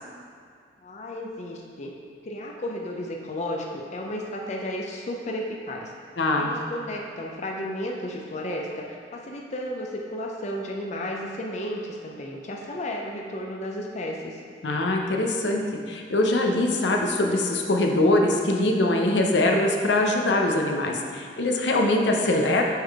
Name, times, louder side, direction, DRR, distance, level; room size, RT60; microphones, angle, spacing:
voice 1, 0.8-1.9 2.2-5.9 6.4-14.4, left 1 dB, 40° left, 0 dB, 0.5 m, -33 dB
voice 2, 6.2-6.5 14.6-15.6 15.9-22.6, left 2 dB, 80° left, 1 dB, 0.6 m, -22 dB
8.5 x 3.7 x 3.5 m, 2.2 s
head